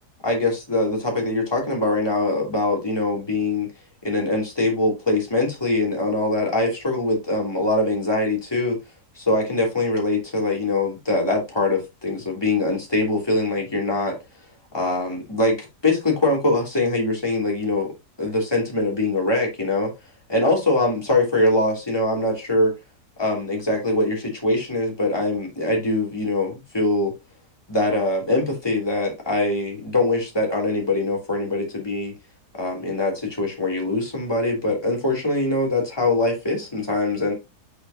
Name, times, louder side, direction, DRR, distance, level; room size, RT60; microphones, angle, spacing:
voice 1, 0.2-3.7 4.0-8.8 9.2-14.2 14.7-17.9 18.2-19.9 20.3-22.7 23.2-27.1 27.7-32.1 32.5-37.3, left 2 dB, 15° left, 2.9 m, -23 dB
8.0 x 6.6 x 2.8 m
omnidirectional pair, 1.8 m